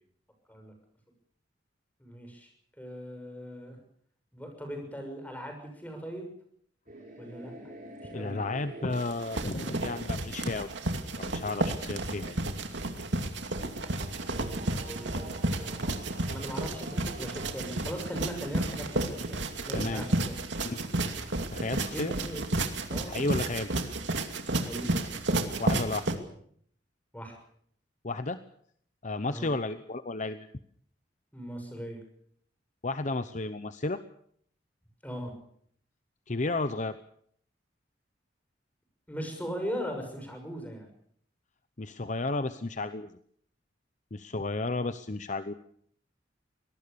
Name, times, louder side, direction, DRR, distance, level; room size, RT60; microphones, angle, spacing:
voice 1, 2.0-2.5 2.8-3.8 4.3-6.3 7.2-7.5 8.1-8.4 14.3-15.3 15.6-15.9 16.3-20.4 21.9-22.4 22.9-23.2 24.6-24.9 27.1-27.4 29.3-29.5 31.3-32.0 35.0-35.3 39.1-40.9, equal, 10° left, 4 dB, 6.6 m, -39 dB
sound 1, 6.9-11.4 13.5-21.3, right 2 dB, 45° right, 6.0 m, -49 dB
voice 2, 8.1-10.7 11.2-12.4 19.7-20.1 20.6-20.8 21.5-22.1 23.1-23.7 25.6-26.1 28.0-28.4 29.0-30.5 32.8-34.0 36.3-37.0 41.8-43.1 44.1-45.5, left 2 dB, 40° left, 11 dB, 0.8 m, -32 dB
sound 2, 8.9-26.2, right 2 dB, 80° right, 2.6 m, -32 dB
24.5 x 19.0 x 6.9 m, 0.64 s
head